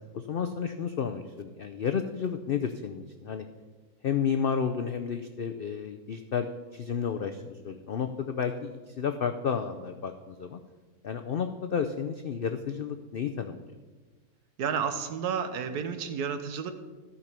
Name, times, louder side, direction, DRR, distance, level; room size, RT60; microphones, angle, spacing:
voice 1, 0.1-3.5 4.0-10.6 11.0-13.6, left 7 dB, 80° left, 7 dB, 0.5 m, -31 dB
voice 2, 14.6-16.7, right 7 dB, 80° right, 9 dB, 1.4 m, -31 dB
13.5 x 5.5 x 6.7 m, 1.3 s
omnidirectional pair, 1.6 m